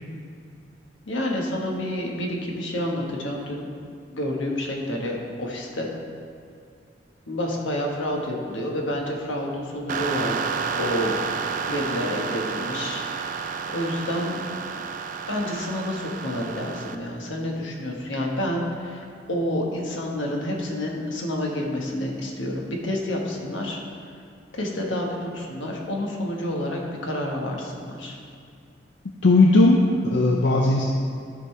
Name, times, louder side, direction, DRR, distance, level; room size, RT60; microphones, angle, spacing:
voice 1, 1.1-3.7 4.1-5.9 7.3-11.1 11.7-13.0 13.7-14.6 15.3-23.8 24.5-28.2, left 1 dB, 85° left, 0 dB, 1.3 m, -29 dB
sound 1, 9.9-17.0, right 5 dB, 45° right, 0.3 m, -30 dB
voice 2, 29.2-30.8, left 2 dB, 65° left, 0 dB, 0.5 m, -17 dB
13.0 x 5.3 x 3.2 m, 2.3 s
head